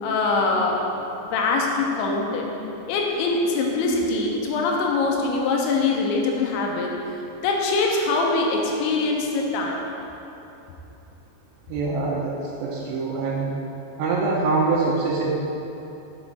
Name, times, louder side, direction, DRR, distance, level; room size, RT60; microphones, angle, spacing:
voice 1, 0.0-0.9 1.2-2.5 2.9-7.0 7.4-9.8, left 3 dB, 90° left, 0 dB, 3.0 m, -23 dB
voice 2, 11.7-13.6 14.0-15.3, right 3 dB, 80° right, -6 dB, 2.7 m, -24 dB
6.3 x 6.1 x 5.5 m, 2.9 s
omnidirectional pair, 5.3 m